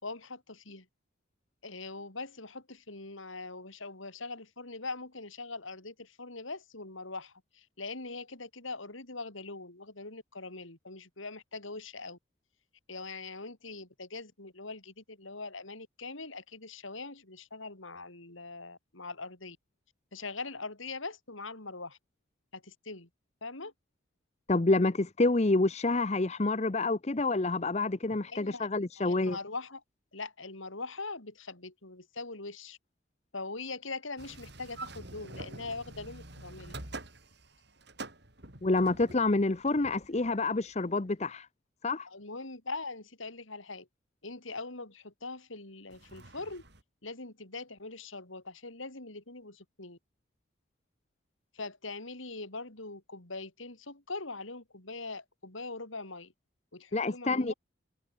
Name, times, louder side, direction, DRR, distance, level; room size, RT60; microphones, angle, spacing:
voice 1, 0.0-0.9 1.6-12.2 12.9-19.6 20.1-22.0 22.5-23.1 23.4-23.7 28.3-28.7 29.0-29.8 30.1-32.8 33.3-36.7 42.1-43.9 44.2-46.6 47.0-50.0 51.5-56.3 56.7-57.5, left 3 dB, 80° left, 4.6 m, -42 dB
voice 2, 24.5-29.4 38.6-41.5 41.8-42.1 56.9-57.5, left 2 dB, 35° left, 0.7 m, -28 dB
sound 1, 34.2-40.9 45.9-46.8, right 2 dB, 55° right, 5.4 m, -47 dB
head